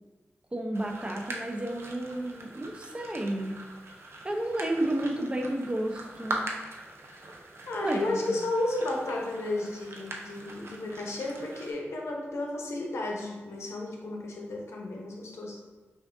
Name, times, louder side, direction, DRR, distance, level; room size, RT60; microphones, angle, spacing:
voice 1, 0.5-3.6 4.2-6.4 7.8-8.4, right 1 dB, 25° right, 2 dB, 0.6 m, -31 dB
sound 1, 0.7-11.7, right 2 dB, 65° right, 0.6 m, -42 dB
voice 2, 7.7-15.6, left 2 dB, 75° left, -1 dB, 0.8 m, -33 dB
5.8 x 2.5 x 2.5 m, 1.3 s
cardioid pair, 70°, 5 cm